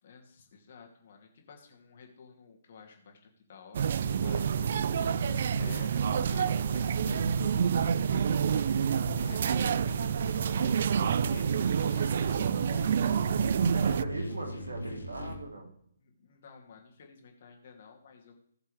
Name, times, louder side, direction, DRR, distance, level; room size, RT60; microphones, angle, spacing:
voice 1, 0.0-3.2 3.5-8.3 8.9-13.4 16.0-18.4, left 5 dB, 45° left, 2 dB, 2.6 m, -52 dB
sound 1, 3.7-14.0, right 8 dB, 45° right, 0.3 m, -28 dB
sound 2, 4.0-15.3, left 1 dB, 80° left, 3.3 m, -39 dB
voice 2, 13.1-15.7, right 2 dB, 70° right, 2 dB, 3.1 m, -39 dB
19.0 x 7.4 x 3.4 m, 0.69 s
figure-of-eight pair, 135°, 0 cm